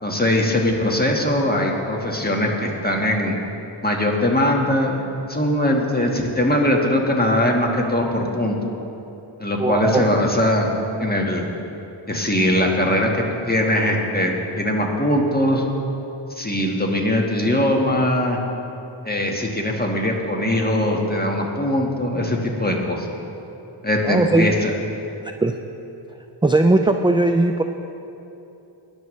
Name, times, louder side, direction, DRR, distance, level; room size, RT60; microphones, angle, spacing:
voice 1, 0.0-3.3 3.8-8.6 9.4-10.7 11.0-11.4 12.1-15.6 16.3-18.4 19.0-23.1 23.8-24.7, left 1 dB, 20° left, 0 dB, 1.5 m, -21 dB
voice 2, 9.6-10.0 24.0-24.5 25.4-25.5 26.4-27.6, right 2 dB, 10° right, 5 dB, 0.3 m, -18 dB
17.5 x 10.5 x 3.2 m, 2.9 s
wide cardioid pair, 55°, 49 cm